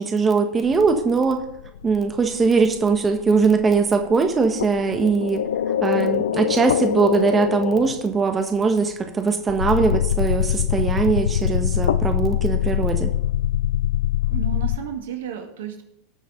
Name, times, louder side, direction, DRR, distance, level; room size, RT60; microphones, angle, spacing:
voice 1, 0.0-1.4 1.8-5.5 5.8-13.1, right 4 dB, 20° right, 5 dB, 1.5 m, -21 dB
sound 1, 0.7-8.0 9.5-14.8, left 10 dB, 80° left, 0.5 m, -24 dB
voice 2, 14.3-15.8, right 9 dB, 75° right, 4 dB, 1.9 m, -32 dB
18.5 x 6.3 x 4.0 m, 0.80 s
hypercardioid pair, 90°, 0 cm